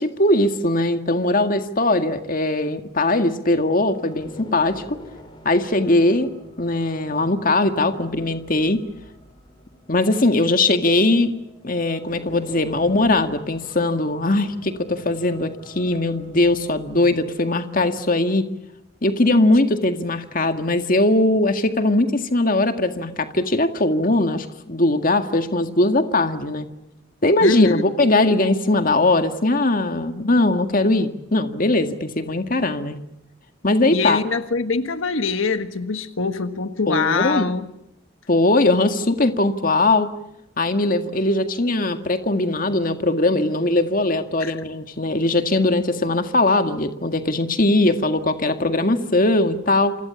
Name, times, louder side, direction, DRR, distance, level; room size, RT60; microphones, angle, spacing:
voice 1, 0.0-5.0 5.5-6.3 6.6-8.8 9.9-11.3 11.6-18.5 19.0-26.7 27.2-33.0 33.6-34.2 36.9-37.5 38.3-40.1 40.6-50.0, left 2 dB, 45° left, 7 dB, 1.9 m, -20 dB
sound 1, 3.5-18.1, left 1 dB, 25° left, 6.0 m, -46 dB
voice 2, 27.4-27.8 33.9-37.7 44.4-44.5, left 4 dB, 85° left, 9 dB, 1.5 m, -24 dB
28.5 x 26.5 x 7.1 m, 0.84 s
head